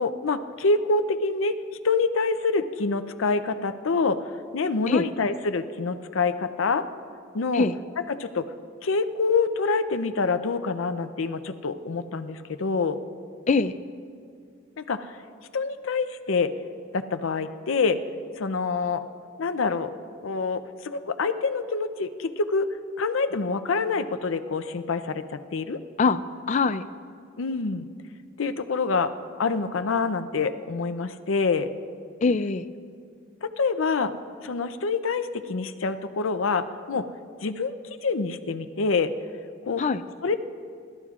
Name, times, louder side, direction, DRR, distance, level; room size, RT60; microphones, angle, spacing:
voice 1, 0.0-1.6 1.8-4.3 4.5-6.8 7.3-7.7 8.1-8.5 8.8-13.0 14.8-15.2 15.5-16.5 16.9-18.0 18.4-19.0 19.4-19.9 20.2-22.7 23.0-25.8 27.4-27.9 28.4-29.1 29.4-31.7 33.4-34.1 34.4-37.1 37.4-37.7 38.0-39.1 39.6-39.8 40.2-40.4, left 4 dB, 90° left, 10 dB, 0.6 m, -26 dB
voice 2, 13.5-13.8 26.0-26.2 26.5-26.9 32.2-32.6 39.8-40.0, left 4 dB, 35° left, 13 dB, 0.4 m, -22 dB
28.5 x 13.0 x 2.4 m, 2.2 s
head